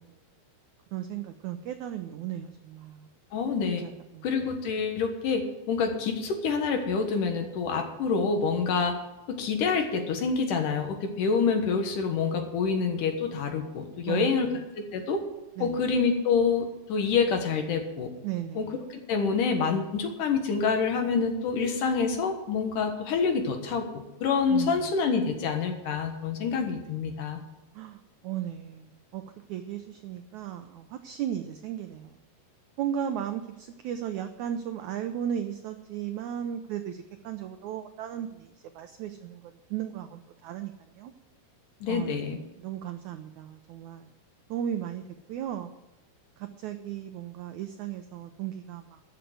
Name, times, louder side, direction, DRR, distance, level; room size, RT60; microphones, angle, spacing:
voice 1, 0.9-3.1 3.6-4.2 14.1-14.5 15.6-15.8 18.2-18.7 24.5-24.8 27.7-29.2 29.5-32.2 32.8-39.4 39.7-41.1 41.9-44.1 44.5-45.0 45.3-45.7 46.4-49.0, right 10 dB, 85° right, 8 dB, 1.7 m, -35 dB
voice 2, 3.3-3.8 4.2-8.9 9.3-14.5 14.9-15.2 15.6-18.1 18.6-27.4 41.8-42.4, left 5 dB, 65° left, 5 dB, 2.8 m, -27 dB
14.0 x 6.8 x 8.0 m, 1.0 s
omnidirectional pair, 4.3 m